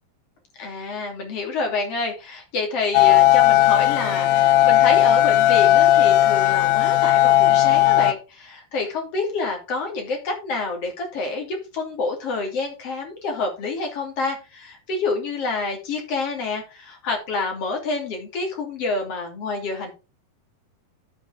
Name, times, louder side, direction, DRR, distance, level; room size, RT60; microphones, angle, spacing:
voice 1, 0.6-19.9, left 3 dB, 40° left, 2 dB, 3.2 m, -28 dB
sound 1, 2.9-8.1, left 14 dB, 85° left, 2.6 m, -16 dB
13.5 x 5.4 x 3.6 m, 0.29 s
omnidirectional pair, 4.6 m